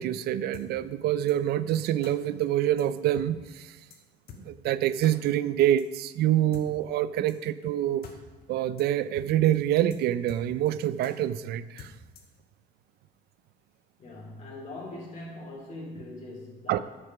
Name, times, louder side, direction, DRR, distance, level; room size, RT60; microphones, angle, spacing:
voice 1, 0.0-3.8 4.4-8.1 8.5-12.0 16.7-16.8, right 12 dB, 70° right, 16 dB, 0.5 m, -26 dB
sound 1, 0.5-0.7 1.3-1.4 2.0-2.1 2.8-2.9 3.2-3.3 3.5-3.6 3.9-4.0 4.3-4.4 5.0-5.1 5.8-5.9 6.5-6.7 7.3-7.4 7.7-7.8 8.0-8.2 8.4-8.5 8.8-8.9 9.2-9.3 9.5-9.6 9.9-10.0 10.3-10.7 11.0-11.1 11.8-12.4, left 7 dB, 65° left, 1.6 m, -46 dB
voice 2, 14.0-16.8, left 2 dB, 45° left, -4 dB, 2.8 m, -41 dB
8.6 x 6.7 x 5.8 m, 1.2 s
cardioid pair, 110°, 17 cm